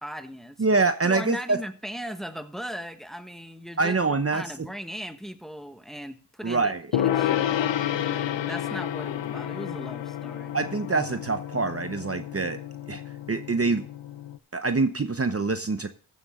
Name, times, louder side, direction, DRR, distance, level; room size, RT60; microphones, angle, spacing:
voice 1, 0.0-0.6 1.0-4.0 4.3-10.6, equal, ahead, 1.4 m, -38 dB
voice 2, 0.6-1.6 3.8-4.4 6.4-6.8 10.5-12.6 12.9-13.0 13.3-13.8 14.5-15.9, right 3 dB, 30° right, 0.9 m, -25 dB
Gong, 6.9-14.4, left 11 dB, 80° left, 0.7 m, -30 dB
15.0 x 7.2 x 3.7 m
cardioid pair, 40°, 43 cm